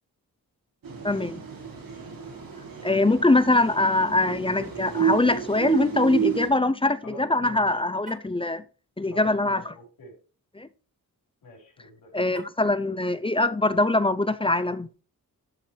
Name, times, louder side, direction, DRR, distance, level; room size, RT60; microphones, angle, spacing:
sound 1, 0.8-6.5, right 8 dB, 70° right, 3.3 m, -30 dB
voice 1, 1.0-1.4 2.8-8.6 9.0-9.6 10.6-10.7 12.1-14.9, left 2 dB, 15° left, 0.5 m, -23 dB
voice 2, 7.0-7.8 9.1-10.1 11.4-12.1, left 1 dB, 85° left, 4.8 m, -45 dB
Car, 8.0-8.4 12.3-12.8, right 3 dB, 20° right, 1.9 m, -47 dB
12.5 x 4.4 x 4.8 m
wide cardioid pair, 155°, 35 cm